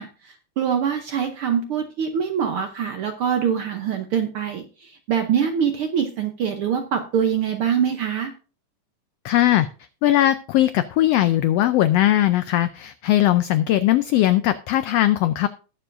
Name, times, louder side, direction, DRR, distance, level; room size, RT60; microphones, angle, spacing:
voice 1, 0.0-8.3, right 8 dB, 70° right, 6 dB, 1.3 m, -24 dB
voice 2, 9.2-9.7 10.0-15.5, left 13 dB, 90° left, 12 dB, 1.4 m, -19 dB
19.5 x 6.9 x 2.6 m, 0.37 s
omnidirectional pair, 3.4 m